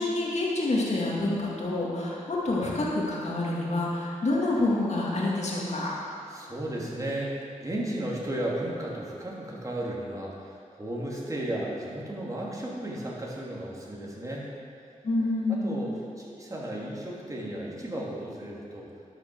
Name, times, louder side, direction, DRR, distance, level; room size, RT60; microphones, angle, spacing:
voice 1, 0.0-5.9 15.0-15.8, left 2 dB, 55° left, -5 dB, 2.3 m, -27 dB
voice 2, 6.3-14.5 15.5-18.9, right 1 dB, 25° right, -4 dB, 3.0 m, -34 dB
11.5 x 6.4 x 6.4 m, 2.4 s
cardioid pair, 45°, 14 cm